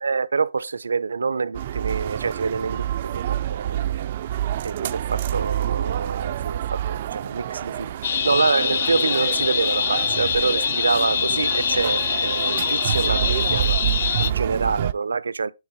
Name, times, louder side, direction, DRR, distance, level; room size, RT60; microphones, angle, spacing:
voice 1, 0.0-4.1 4.6-6.6 6.9-7.9 8.2-13.8 14.2-15.5, right 4 dB, 85° right, 0.6 m, -26 dB
sound 1, 1.5-14.9, right 11 dB, 30° right, 0.3 m, -28 dB
sound 2, 8.0-14.3, left 8 dB, 45° left, 0.3 m, -24 dB
9.5 x 3.9 x 4.1 m
hypercardioid pair, 165°, 0 cm